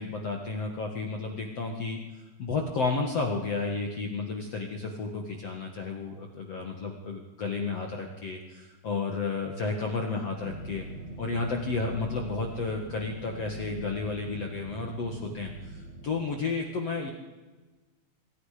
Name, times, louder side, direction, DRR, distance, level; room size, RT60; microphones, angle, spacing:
voice 1, 0.0-10.8 11.2-17.1, left 4 dB, 55° left, 2 dB, 1.8 m, -32 dB
sound 1, 10.4-16.2, right 2 dB, 35° right, 5.2 m, -42 dB
27.5 x 22.5 x 5.1 m, 1.2 s
omnidirectional pair, 5.4 m